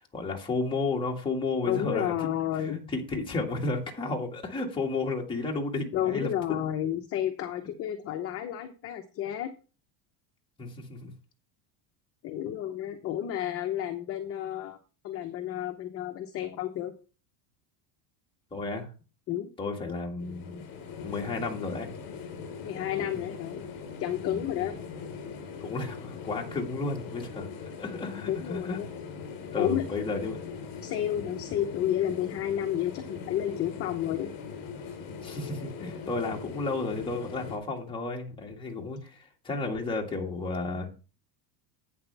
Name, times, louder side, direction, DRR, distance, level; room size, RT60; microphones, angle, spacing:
voice 1, 0.0-2.1 2.6-6.3 10.6-11.1 18.5-18.9 19.6-20.7 20.9-21.9 23.1-23.2 24.3-24.5 25.6-27.5 27.8-28.8 29.5-30.4 35.2-40.9, left 3 dB, 10° left, -1 dB, 1.9 m, -32 dB
voice 2, 1.6-2.8 5.9-9.5 12.2-14.8 15.0-16.9 19.3-19.5 22.6-23.7 24.0-24.7 28.3-28.9 29.6-29.8 30.8-34.3, left 11 dB, 30° left, 5 dB, 0.8 m, -31 dB
sound 1, 20.2-37.6, left 6 dB, 45° left, 4.2 m, -41 dB
11.0 x 9.1 x 3.4 m, 0.34 s
cardioid pair, 165°, 47 cm